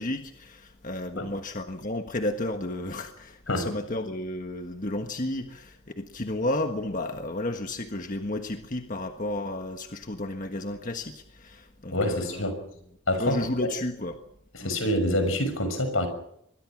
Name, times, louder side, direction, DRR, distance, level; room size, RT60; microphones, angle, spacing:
voice 1, 0.0-12.5 13.1-14.2 14.6-14.8, left 1 dB, 40° left, 1.5 m, -32 dB
voice 2, 11.9-12.6 13.1-13.7 14.5-16.1, left 1 dB, 80° left, 6.3 m, -26 dB
26.5 x 22.0 x 6.2 m
head